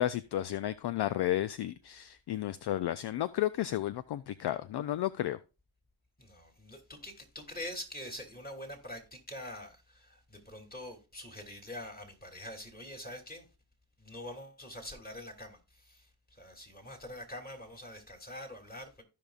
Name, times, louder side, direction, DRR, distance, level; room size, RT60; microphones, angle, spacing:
voice 1, 0.0-5.4, left 13 dB, 55° left, 0.5 m, -32 dB
voice 2, 6.2-13.5 14.0-19.0, left 1 dB, 20° left, 2.9 m, -45 dB
15.0 x 5.3 x 2.4 m
supercardioid pair, 50°, 49 cm